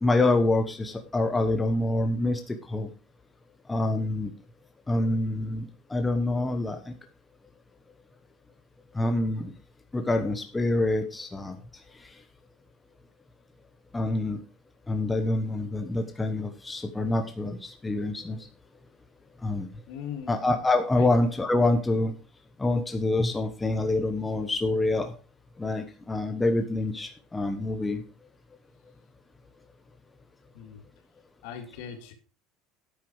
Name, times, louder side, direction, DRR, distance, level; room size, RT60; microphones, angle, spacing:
voice 1, 0.0-2.9 3.7-4.3 4.9-6.9 8.9-9.5 9.9-11.6 13.9-14.4 14.9-18.4 19.4-19.7 20.3-22.1 22.6-25.1 25.6-28.0, left 2 dB, 10° left, 5 dB, 1.1 m, -26 dB
voice 2, 19.9-20.6 20.9-21.1 30.5-30.8 31.4-32.1, left 8 dB, 75° left, 6 dB, 2.4 m, -39 dB
10.5 x 8.3 x 4.9 m, 0.34 s
cardioid pair, 175°, 0 cm